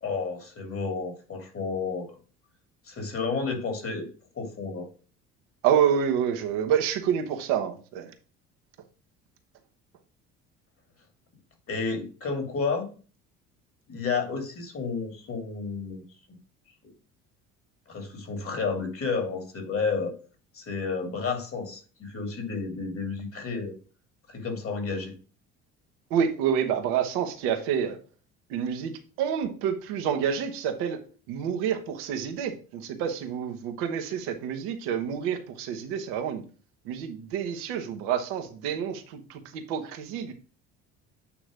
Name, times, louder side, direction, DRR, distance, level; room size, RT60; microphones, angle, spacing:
voice 1, 0.0-2.2 2.9-4.1 4.4-4.9 11.7-12.9 13.9-16.0 17.9-20.1 20.5-23.7 24.3-25.1, left 4 dB, 40° left, 5 dB, 2.6 m, -31 dB
voice 2, 5.6-8.1 26.1-28.0 28.5-31.0 31.3-36.4 36.8-40.3, right 8 dB, 80° right, 5 dB, 1.2 m, -28 dB
8.6 x 3.1 x 5.0 m, 0.37 s
hypercardioid pair, 70°, 33 cm